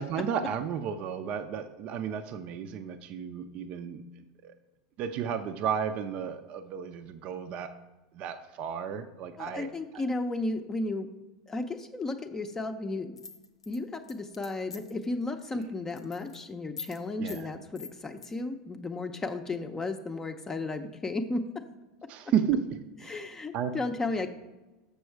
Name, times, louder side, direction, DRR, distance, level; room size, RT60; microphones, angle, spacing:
voice 1, 0.0-4.0 4.4-4.5 5.0-7.7 8.2-9.7 15.5-15.6 17.2-17.5 22.1-23.2 23.5-23.7, right 8 dB, 45° right, 9 dB, 0.6 m, -33 dB
voice 2, 9.4-11.1 11.5-13.2 13.7-21.6 23.0-24.3, left 2 dB, 15° left, 6 dB, 0.6 m, -34 dB
sound 1, 13.2-15.0 15.4-15.6 15.9-16.4 16.8-17.0 17.3-17.4 17.8-18.3, left 5 dB, 85° left, 0.8 m, -43 dB
6.8 x 6.2 x 4.6 m, 1.1 s
figure-of-eight pair, 85°, 3 cm